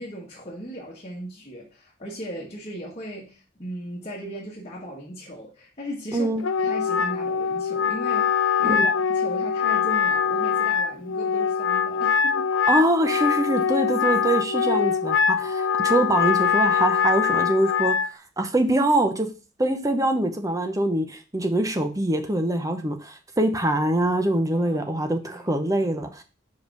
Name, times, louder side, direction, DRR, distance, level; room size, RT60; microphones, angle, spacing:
voice 1, 0.0-12.5 24.5-25.5, equal, 30° left, 1.3 m, -37 dB
voice 2, 6.1-6.4 8.6-8.9 12.7-19.3 19.6-26.2, right 1 dB, 15° right, 0.8 m, -24 dB
Wind instrument woodwind instrument, 6.4-18.1, left 6 dB, 75° left, 0.5 m, -23 dB
5.2 x 4.8 x 4.6 m
head